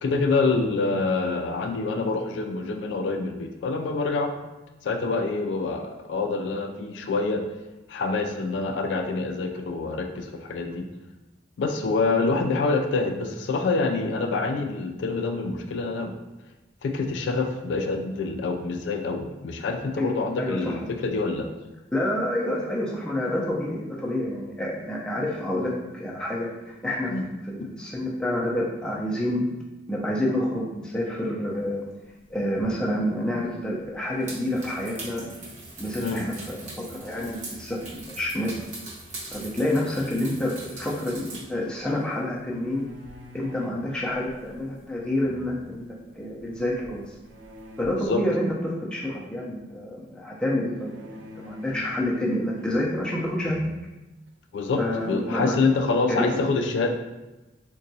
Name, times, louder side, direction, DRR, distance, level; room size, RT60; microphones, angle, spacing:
voice 1, 0.0-4.3 4.8-7.4 7.9-10.9 11.6-16.1 16.8-21.5 27.1-27.2 27.6-27.7 36.0-36.3 48.0-48.2 54.5-54.8 55.1-56.9, left 3 dB, 70° left, 4 dB, 0.3 m, -26 dB
voice 2, 20.4-20.8 21.9-27.1 27.5-29.4 29.9-31.8 32.3-35.3 35.8-36.6 36.9-38.5 39.3-42.9 43.3-47.1 47.8-53.6 54.8-55.6 56.1-56.4, left 1 dB, 5° left, -4 dB, 0.4 m, -28 dB
sound 1, 32.3-32.7 33.0-33.1 33.8-41.5 41.8-45.3 45.6-45.9 46.2-48.1, right 2 dB, 40° right, 0.8 m, -42 dB
sound 2, 42.5-43.8 45.0-45.7 47.2-47.8 50.8-52.1 52.5-53.0 53.2-53.7 54.3-54.4 54.7-55.5, left 1 dB, 70° right, 0.5 m, -45 dB
3.8 x 2.2 x 2.7 m, 1.1 s
head